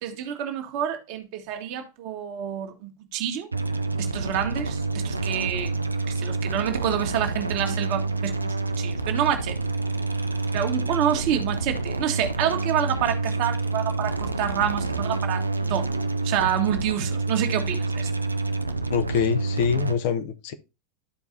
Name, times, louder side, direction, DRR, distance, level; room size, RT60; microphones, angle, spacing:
voice 1, 0.0-3.5 4.0-5.7 6.1-9.6 10.5-15.4 15.7-15.9 16.2-18.1, right 9 dB, 45° right, 1.4 m, -28 dB
sound 1, 3.5-19.9, right 3 dB, 80° right, 0.5 m, -28 dB
voice 2, 18.9-20.5, left 7 dB, 50° left, 0.8 m, -25 dB
12.5 x 4.6 x 2.7 m
figure-of-eight pair, 90°, 0 cm